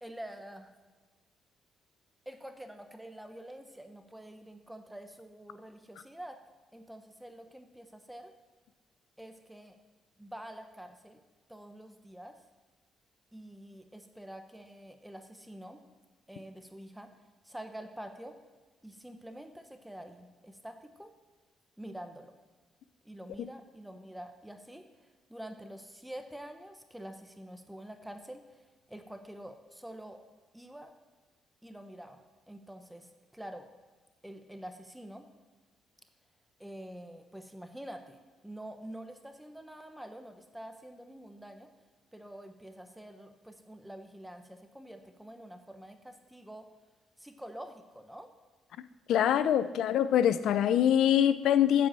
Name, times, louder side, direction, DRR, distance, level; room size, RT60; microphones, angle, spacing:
voice 1, 0.0-0.7 2.3-6.4 6.7-8.3 9.2-9.8 10.2-11.2 11.5-12.4 13.3-15.8 16.3-17.1 17.4-18.4 18.8-21.1 21.8-22.3 23.0-30.2 30.5-30.9 31.6-33.7 34.2-35.3 36.6-41.7 42.1-46.7 47.2-48.3, right 1 dB, 5° right, 6 dB, 1.0 m, -47 dB
voice 2, 49.1-51.9, left 10 dB, 80° left, 14 dB, 0.6 m, -24 dB
9.6 x 7.7 x 7.6 m, 1.3 s
cardioid pair, 90°, 0 cm